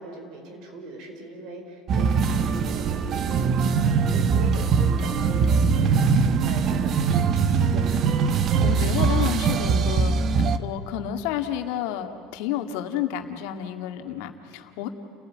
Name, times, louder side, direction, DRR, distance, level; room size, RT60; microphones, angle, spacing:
voice 1, 0.0-8.0, right 2 dB, 60° right, 4 dB, 5.0 m, -41 dB
sound 1, 1.9-10.6, right 5 dB, 40° right, 1.0 m, -22 dB
voice 2, 8.3-10.1 10.6-14.9, left 10 dB, 75° left, 6 dB, 2.0 m, -30 dB
30.0 x 16.5 x 9.4 m, 2.6 s
cardioid pair, 155°, 0 cm